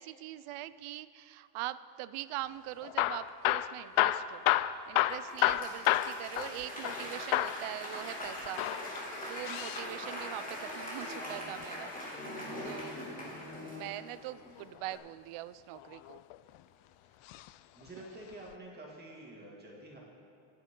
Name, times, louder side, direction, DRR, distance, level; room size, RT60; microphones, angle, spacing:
voice 1, 0.0-4.5 4.9-8.6 9.3-11.9 12.6-13.0 13.5-16.2, right 15 dB, 90° right, 15 dB, 0.7 m, -42 dB
Hammer / Drill, 2.8-7.0 7.3-7.6 8.4-9.9 11.6-12.9 14.6-15.0 15.7-16.6 17.3-17.5 17.8-17.9 18.5-18.6, left 14 dB, 75° left, 0.6 m, -31 dB
Applause / Crowd, 5.1-14.5 14.9-15.0, left 1 dB, 15° left, 3.5 m, -41 dB
voice 2, 17.7-20.0, right 1 dB, 20° right, -3 dB, 2.3 m, -48 dB
27.0 x 10.0 x 3.8 m, 2.7 s
cardioid pair, 170°, 49 cm